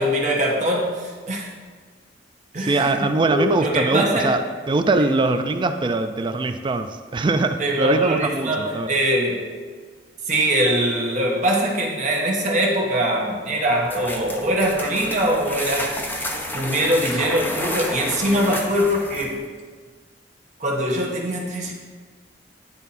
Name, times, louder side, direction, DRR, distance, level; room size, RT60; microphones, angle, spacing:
voice 1, 0.0-1.5 2.5-4.3 5.0-5.1 7.6-9.5 10.2-16.0 16.5-19.4 20.6-21.7, right 1 dB, 45° right, -1 dB, 1.2 m, -22 dB
voice 2, 2.6-4.4 4.7-8.9 18.3-18.4, right 3 dB, 25° right, 8 dB, 0.4 m, -22 dB
sound 1, 13.8-19.4, left 1 dB, 10° left, 0.7 m, -30 dB
10.0 x 3.6 x 4.2 m, 1.5 s
head